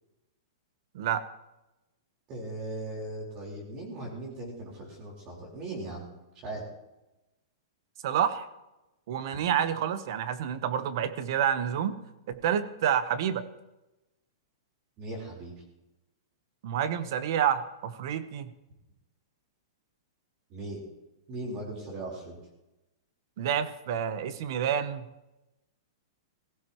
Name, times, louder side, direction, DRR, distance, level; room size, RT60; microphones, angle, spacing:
voice 1, 2.3-6.1 6.4-6.6 15.0-15.5 20.5-20.8 21.3-22.3, right 2 dB, 30° right, -1 dB, 4.1 m, -38 dB
voice 2, 8.0-8.5 9.1-12.0 12.3-13.5 16.6-18.5 23.4-25.1, right 9 dB, 55° right, 12 dB, 1.0 m, -28 dB
17.0 x 16.0 x 3.0 m, 0.97 s
hypercardioid pair, 160°, 3 cm